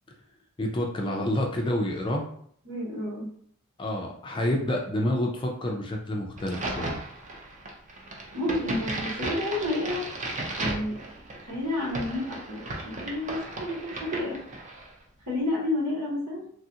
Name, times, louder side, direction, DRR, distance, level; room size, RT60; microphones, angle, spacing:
voice 1, 0.6-2.3 3.8-7.0, left 1 dB, 20° left, 0 dB, 0.4 m, -28 dB
voice 2, 2.6-3.3 8.3-10.1 10.6-11.0 11.4-14.4 15.3-16.5, left 1 dB, 80° right, -8 dB, 1.3 m, -30 dB
Crack, 6.4-14.9, right 2 dB, 35° right, 0.5 m, -35 dB
3.2 x 2.4 x 2.7 m, 0.63 s
head